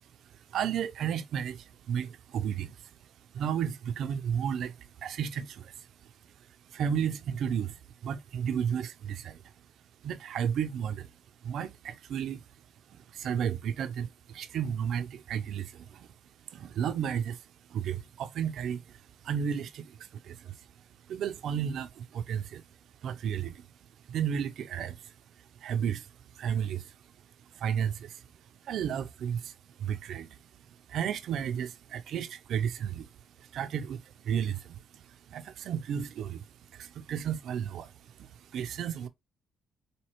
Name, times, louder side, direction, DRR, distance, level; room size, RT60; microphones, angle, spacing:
voice 1, 0.3-2.8 3.3-5.9 6.7-9.4 10.0-11.1 11.4-12.4 12.9-16.1 16.5-17.4 17.7-20.6 21.1-22.6 23.0-23.7 24.1-25.1 25.6-26.1 26.3-26.9 27.5-28.2 28.6-30.4 30.9-33.1 33.4-39.1, right 8 dB, 75° right, 0.5 m, -33 dB
4.3 x 2.8 x 2.9 m
cardioid pair, 85°, 0 cm